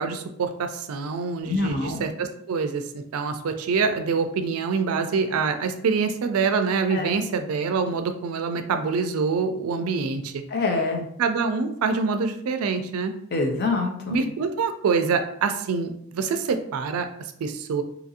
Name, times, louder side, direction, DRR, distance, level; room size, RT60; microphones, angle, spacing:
voice 1, 0.0-2.8 3.1-10.4 11.2-13.1 14.1-17.1 17.4-17.8, right 5 dB, 85° right, 7 dB, 0.4 m, -25 dB
voice 2, 1.4-2.0 6.9-7.2 10.5-11.1 13.3-14.2, left 3 dB, 50° left, 3 dB, 0.5 m, -25 dB
2.8 x 2.5 x 2.7 m, 0.70 s
head